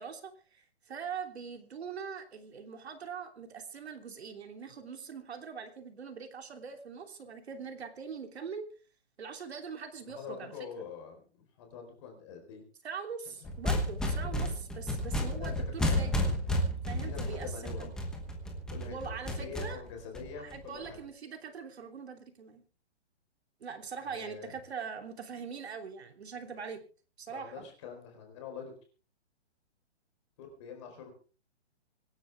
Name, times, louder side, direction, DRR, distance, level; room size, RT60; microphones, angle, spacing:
voice 1, 0.0-8.7 9.2-10.5 12.8-16.3 16.8-17.9 18.8-19.8 20.4-22.6 23.6-26.8 27.2-27.6, right 6 dB, 65° right, 5 dB, 3.2 m, -42 dB
voice 2, 10.0-12.6 13.3-13.5 14.3-14.6 15.3-16.3 16.9-18.0 18.5-21.0 24.0-24.5 27.3-28.7 30.4-31.1, left 6 dB, 25° left, 3 dB, 4.3 m, -45 dB
sound 1, 13.4-20.9, left 1 dB, ahead, 1.1 m, -32 dB
25.5 x 10.5 x 3.5 m, 0.38 s
hypercardioid pair, 175°, 34 cm